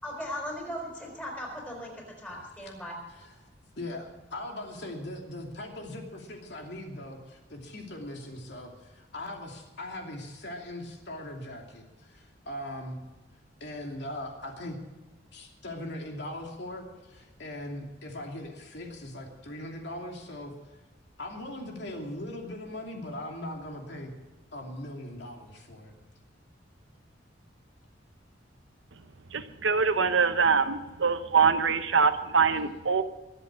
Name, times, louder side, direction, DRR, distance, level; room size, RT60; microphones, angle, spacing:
voice 1, 0.0-3.0, equal, 10° left, -1 dB, 5.0 m, -38 dB
voice 2, 3.8-13.0 13.6-14.8 15.3-20.5 21.2-24.1 24.5-25.9, left 1 dB, 60° left, 1 dB, 2.8 m, -40 dB
voice 3, 29.3-33.0, right 5 dB, 75° right, 10 dB, 0.9 m, -24 dB
23.5 x 8.2 x 6.3 m, 1.1 s
head